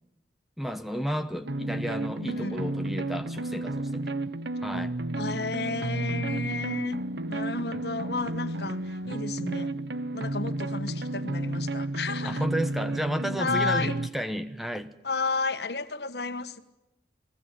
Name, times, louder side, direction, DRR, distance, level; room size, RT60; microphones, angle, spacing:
voice 1, 0.6-4.1 4.6-4.9 12.2-14.9, equal, ahead, 1.1 m, -32 dB
sound 1, 1.4-14.1, right 2 dB, 70° right, 1.2 m, -32 dB
voice 2, 2.2-2.6 5.1-9.7 10.1-12.5 13.4-13.9 15.0-16.6, left 3 dB, 65° left, 1.7 m, -32 dB
29.5 x 19.0 x 9.2 m
head